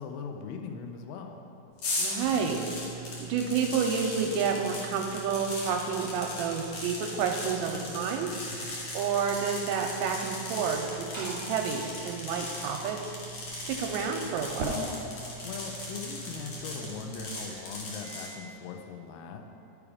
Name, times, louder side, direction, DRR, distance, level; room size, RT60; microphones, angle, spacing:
voice 1, 0.0-1.4 8.5-8.7 15.4-19.4, left 5 dB, 80° left, 4 dB, 3.0 m, -40 dB
sound 1, 1.7-18.6, right 4 dB, 45° left, 1.3 m, -47 dB
sound 2, 1.8-18.3, left 2 dB, 65° left, 1.7 m, -38 dB
voice 2, 2.0-13.1 13.7-14.8, right 6 dB, 85° right, 3 dB, 2.5 m, -30 dB
Liquid, 10.6-17.7, right 1 dB, 40° right, 1.7 m, -42 dB
12.0 x 5.1 x 4.9 m, 2.8 s
omnidirectional pair, 5.2 m